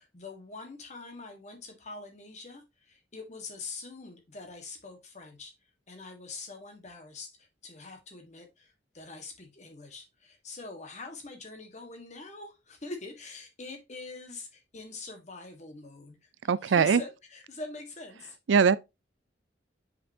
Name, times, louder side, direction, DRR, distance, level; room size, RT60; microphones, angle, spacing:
voice 1, 0.0-5.5 5.9-16.3 16.6-18.4, left 3 dB, 40° left, 1.6 m, -44 dB
voice 2, 16.5-17.0 18.5-18.8, right 6 dB, 85° right, 0.4 m, -21 dB
6.6 x 5.4 x 2.8 m
head